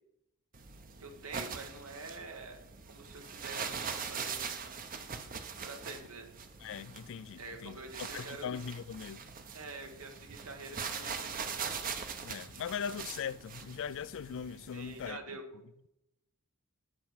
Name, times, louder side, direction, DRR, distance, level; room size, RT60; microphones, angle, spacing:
sound 1, 0.5-15.1, right 6 dB, 40° right, 0.8 m, -42 dB
voice 1, 1.0-4.9 5.6-6.3 7.4-8.7 9.5-11.7 14.7-15.6, right 3 dB, 80° right, 1.7 m, -47 dB
voice 2, 6.6-7.8 8.1-9.3 12.2-15.2, left 7 dB, 60° left, 0.4 m, -40 dB
11.0 x 7.0 x 4.8 m
head